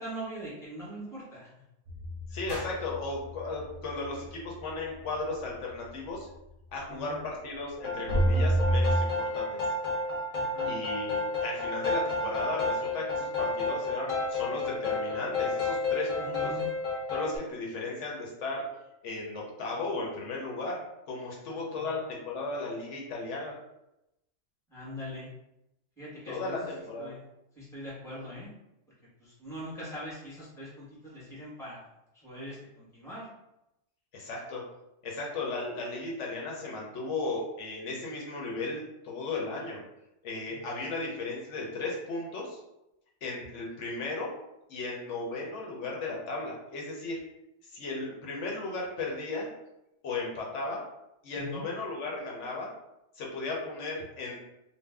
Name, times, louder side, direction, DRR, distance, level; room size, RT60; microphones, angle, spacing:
voice 1, 0.0-1.5 6.9-7.2 10.3-10.7 16.2-16.7 21.5-21.9 24.7-25.3 26.0-26.7 27.0-27.3 27.6-28.5 29.2-31.9 32.1-33.3 40.5-40.6 51.4-51.6, equal, 5° left, -9 dB, 1.2 m, -42 dB
sound 1, 1.9-6.4 6.7-6.8 7.2-7.4 8.1-9.0, right 1 dB, 40° right, 0.5 m, -29 dB
voice 2, 2.3-6.3 6.7-9.6 10.6-16.5 17.1-18.7 19.0-23.6 26.3-27.1 34.1-34.6 35.0-39.8 40.2-42.6 43.2-44.3 44.7-47.2 47.7-49.5 50.0-50.8 51.2-52.7 53.2-54.4, left 3 dB, 90° left, -2 dB, 1.1 m, -35 dB
sound 2, 2.5-4.6, equal, 55° left, 1.3 m, -46 dB
sound 3, 7.8-17.4, left 3 dB, 35° left, 0.7 m, -31 dB
2.6 x 2.2 x 3.4 m, 0.88 s
omnidirectional pair, 1.2 m